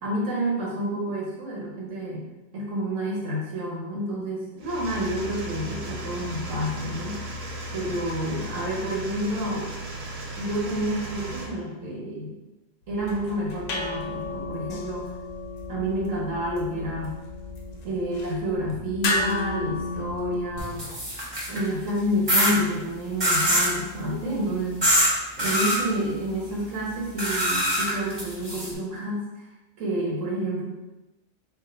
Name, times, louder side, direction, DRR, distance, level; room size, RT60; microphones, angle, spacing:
voice 1, 0.0-2.2 2.5-7.2 7.7-9.7 10.3-12.3 12.9-15.1 15.7-17.2 17.8-20.9 21.5-24.8 25.4-29.4 29.8-30.6, equal, 85° right, -4 dB, 1.3 m, -29 dB
sound 1, 4.6-11.5, right 1 dB, 65° right, 0.9 m, -36 dB
sound 2, 12.9-20.9, left 2 dB, 85° left, 1.0 m, -33 dB
sound 3, 20.6-21.7 22.3-22.5 23.2-23.7 24.8-25.1 25.4-25.8 27.2-28.7, equal, 20° right, 1.0 m, -23 dB
3.5 x 2.6 x 3.8 m, 1.0 s
omnidirectional pair, 1.3 m